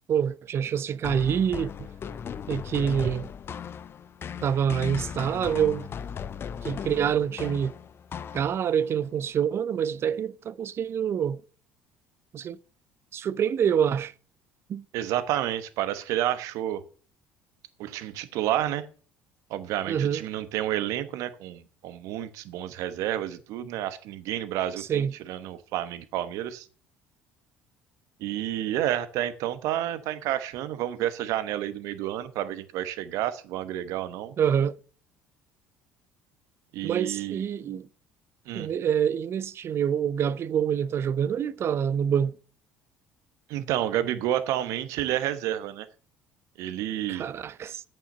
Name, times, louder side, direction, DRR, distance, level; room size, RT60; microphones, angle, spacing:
voice 1, 0.1-1.9 2.5-3.3 4.4-5.9 6.6-7.7 8.3-11.4 12.3-12.6 13.1-14.1 14.7-14.8 19.9-20.2 24.8-25.1 34.4-34.8 36.8-37.9 38.5-42.3 47.1-47.8, right 8 dB, 45° right, 0.5 m, -26 dB
sound 1, 1.0-8.9, left 7 dB, 40° left, 0.7 m, -37 dB
voice 2, 14.9-16.8 17.8-18.9 19.5-26.7 28.2-34.3 36.7-37.4 38.5-38.7 43.5-45.9 46.6-47.3, right 12 dB, 65° right, 1.0 m, -30 dB
8.5 x 7.2 x 6.5 m
hypercardioid pair, 60°, 6 cm